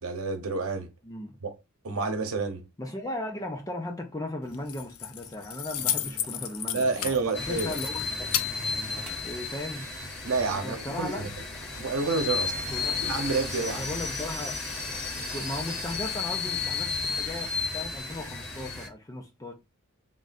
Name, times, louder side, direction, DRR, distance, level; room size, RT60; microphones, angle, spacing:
voice 1, 0.0-0.9 1.4-1.6 1.8-2.7 6.7-7.8 10.2-11.3 11.7-12.6 13.0-13.9, right 4 dB, 80° right, 0.9 m, -29 dB
voice 2, 1.0-1.4 2.8-7.1 7.5-8.3 9.2-9.9 10.4-11.2 12.7-13.0 13.6-14.6 15.3-19.5, left 1 dB, 15° left, 0.5 m, -37 dB
Keys jangling, 4.4-9.5, left 10 dB, 80° left, 0.5 m, -34 dB
sound 1, 5.8-9.3 9.7-10.4, equal, 5° right, 1.2 m, -46 dB
sound 2, 7.3-18.9, left 4 dB, 55° left, 1.7 m, -33 dB
3.7 x 2.5 x 4.1 m
head